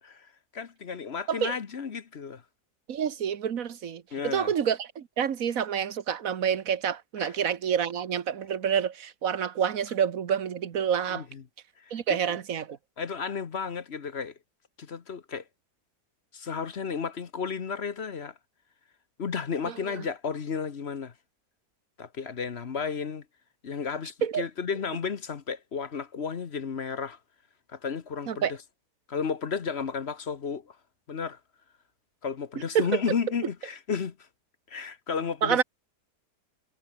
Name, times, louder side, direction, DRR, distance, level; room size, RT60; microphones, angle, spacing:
voice 1, 0.0-2.4 4.1-4.5 7.2-7.4 11.1-11.4 11.8-12.2 13.0-14.3 14.8-15.4 16.3-18.3 19.2-21.1 22.0-23.2 23.6-27.2 27.7-28.6 29.1-30.8 31.1-31.4 32.2-34.2 34.7-35.6, left 6 dB, 45° left, 1.2 m, -33 dB
voice 2, 2.9-11.3 11.9-12.8 19.6-20.0 24.2-24.4 28.3-28.5 32.7-32.9 35.4-35.6, right 8 dB, 60° right, 1.5 m, -28 dB
omnidirectional pair, 1.7 m